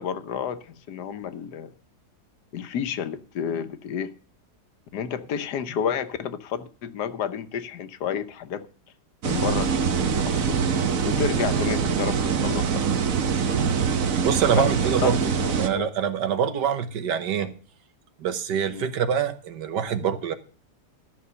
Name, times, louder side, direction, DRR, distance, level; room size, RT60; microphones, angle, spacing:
voice 1, 0.0-1.7 2.5-4.1 4.9-8.7 9.2-10.6 11.0-12.8 14.6-14.7 15.0-15.1 15.4-15.9 18.7-18.8, left 8 dB, 75° left, 1.4 m, -31 dB
sound 1, 9.2-15.7, right 6 dB, 60° right, 1.3 m, -24 dB
voice 2, 14.2-15.3 15.6-17.5 18.2-20.4, right 7 dB, 85° right, 1.7 m, -25 dB
13.0 x 6.0 x 6.8 m
omnidirectional pair, 1.8 m